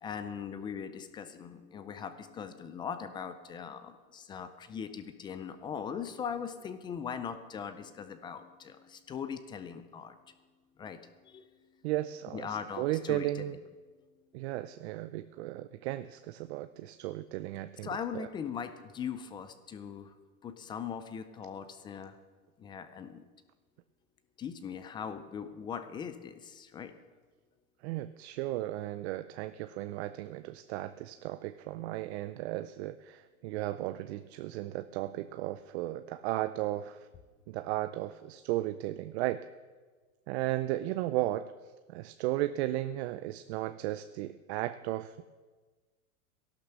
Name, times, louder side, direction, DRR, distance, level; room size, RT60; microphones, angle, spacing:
voice 1, 0.0-10.1 10.8-11.0 11.2-11.4 12.3-13.5 17.8-20.1 20.4-22.1 22.6-23.2 24.4-26.9, left 7 dB, 10° left, 11 dB, 0.3 m, -40 dB
voice 2, 11.8-13.6 14.3-18.3 27.8-37.0 37.5-39.4 40.3-41.5 41.9-45.2, right 15 dB, 50° right, 12 dB, 0.6 m, -35 dB
14.5 x 11.5 x 6.6 m, 1.4 s
supercardioid pair, 130°, 44 cm